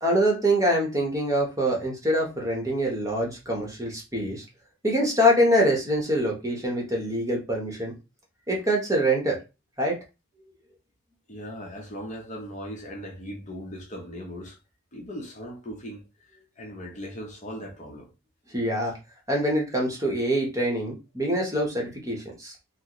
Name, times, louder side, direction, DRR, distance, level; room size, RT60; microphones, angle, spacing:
voice 1, 0.0-4.4 4.8-7.9 8.5-9.4 9.8-10.0 18.5-19.0 19.3-22.5, equal, 15° right, 0.8 m, -24 dB
voice 2, 11.3-14.6 14.9-18.1 18.8-18.9, equal, 35° left, 0.7 m, -39 dB
4.0 x 2.0 x 2.9 m
head